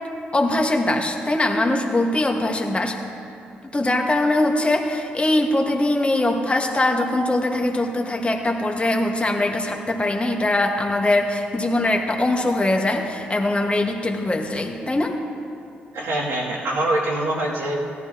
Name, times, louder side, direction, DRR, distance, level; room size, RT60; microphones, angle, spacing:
voice 1, 0.3-3.0 3.7-15.2, left 2 dB, 25° left, 2 dB, 1.6 m, -22 dB
voice 2, 15.9-17.7, right 1 dB, 75° right, -6 dB, 2.6 m, -24 dB
17.5 x 11.5 x 2.9 m, 2.6 s
hypercardioid pair, 45°, 5 cm